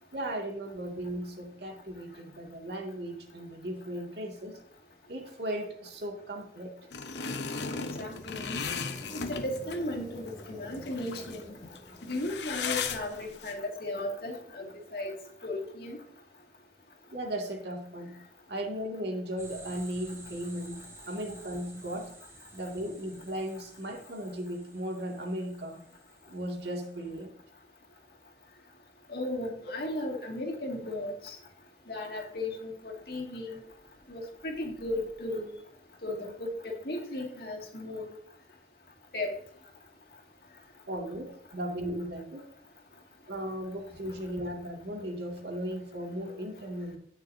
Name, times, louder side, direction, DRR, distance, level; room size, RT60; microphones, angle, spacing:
voice 1, 0.1-4.5 5.1-6.7 17.1-18.1 18.5-22.1 22.5-25.8 26.3-27.3 40.9-42.4 43.3-47.0, right 1 dB, 75° right, 1 dB, 2.3 m, -36 dB
sound 1, 6.9-9.8 10.4-10.5 10.7-11.4 11.6-13.5, left 5 dB, 80° left, 0.9 m, -36 dB
sound 2, 7.6-13.5, equal, 20° left, 1.8 m, -49 dB
voice 2, 8.0-8.6 9.3-11.6 12.0-15.2 15.4-16.0 29.1-31.4 31.9-33.6 34.1-35.5 36.0-38.1 39.1-39.4, left 1 dB, 60° left, 1 dB, 2.3 m, -35 dB
sound 3, 19.4-27.1, right 2 dB, 15° right, 2.9 m, -52 dB
16.5 x 6.8 x 2.7 m, 0.64 s
head